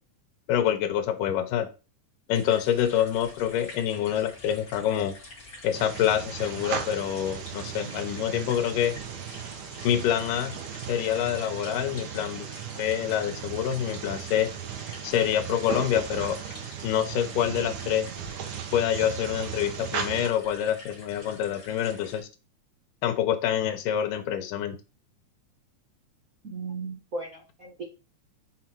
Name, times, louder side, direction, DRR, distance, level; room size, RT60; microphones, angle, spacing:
voice 1, 0.5-1.7 2.3-5.2 5.6-9.0 9.8-10.5 10.9-12.5 12.8-14.5 15.0-16.4 16.8-18.1 18.7-22.3 23.0-24.8, left 10 dB, 90° left, 6 dB, 2.4 m, -26 dB
sound 1, 2.3-22.2, left 2 dB, 30° left, 2.3 m, -48 dB
sound 2, 5.7-20.3, right 8 dB, 75° right, 2.4 m, -37 dB
voice 2, 26.4-27.8, right 3 dB, 60° right, -2 dB, 0.9 m, -36 dB
5.9 x 4.1 x 4.5 m, 0.31 s
omnidirectional pair, 3.7 m